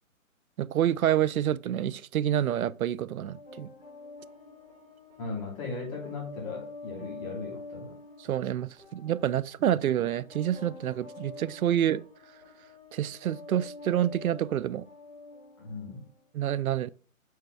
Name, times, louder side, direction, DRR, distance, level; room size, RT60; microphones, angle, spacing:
voice 1, 0.6-3.7 8.2-12.0 12.9-14.8 16.3-16.9, right 11 dB, 85° right, 0.5 m, -28 dB
sound 1, 3.2-16.2, left 3 dB, 5° left, 3.3 m, -47 dB
voice 2, 5.2-8.0 15.6-16.0, left 4 dB, 25° left, 2.5 m, -37 dB
6.5 x 4.7 x 3.2 m
hypercardioid pair, 155°, 41 cm